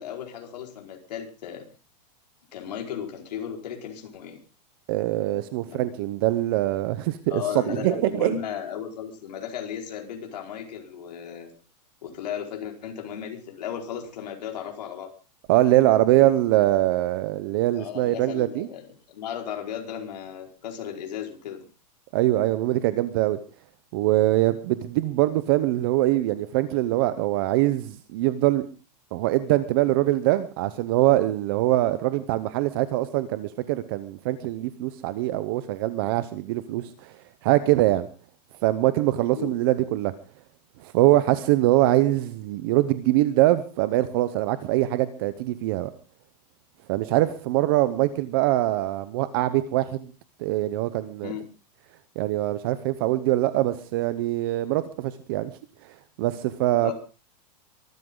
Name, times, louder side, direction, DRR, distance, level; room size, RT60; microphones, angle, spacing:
voice 1, 0.0-1.7 2.5-4.4 5.7-5.9 7.3-11.5 12.0-15.1 17.7-21.7 39.1-39.5 51.2-51.5 56.8-56.9, left 9 dB, 75° left, 2 dB, 4.8 m, -35 dB
voice 2, 4.9-8.4 15.5-18.7 22.1-23.4 23.9-28.7 29.1-37.1 37.4-38.1 38.6-40.1 40.8-45.9 46.9-50.1 50.4-51.3 52.2-55.5 56.2-56.9, right 16 dB, 35° right, 14 dB, 0.8 m, -23 dB
23.5 x 13.0 x 3.8 m, 0.33 s
supercardioid pair, 175°, 21 cm